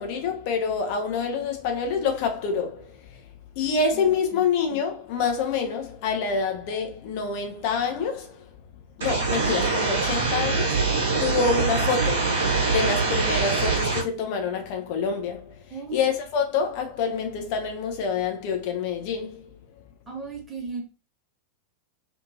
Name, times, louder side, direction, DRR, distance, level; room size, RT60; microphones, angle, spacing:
voice 1, 0.0-2.9 3.6-8.4 9.0-15.5 15.9-19.4, left 5 dB, 45° left, 0.5 m, -27 dB
voice 2, 3.9-4.5 15.7-16.1 20.1-20.8, right 4 dB, 10° right, 1.2 m, -36 dB
sound 1, 9.0-14.0, right 4 dB, 60° right, 0.9 m, -24 dB
2.6 x 2.6 x 2.6 m
figure-of-eight pair, 90°, 0 cm